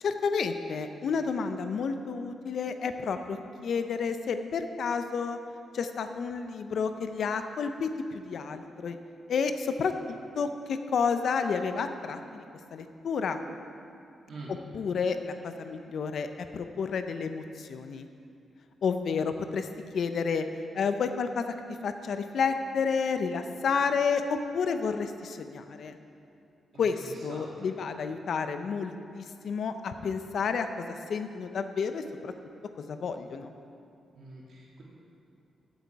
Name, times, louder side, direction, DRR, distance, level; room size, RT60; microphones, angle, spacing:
voice 1, 0.0-5.4 5.7-9.0 9.3-12.4 12.7-13.4 14.7-18.1 18.8-19.7 19.9-20.5 20.7-21.4 21.8-26.0 26.8-27.0 27.2-32.3 32.9-33.5, left 5 dB, 60° left, 8 dB, 0.7 m, -30 dB
voice 2, 26.7-27.7 34.1-34.8, right 2 dB, 55° right, -4 dB, 2.8 m, -45 dB
14.0 x 8.1 x 4.7 m, 2.6 s
wide cardioid pair, 140°, 0 cm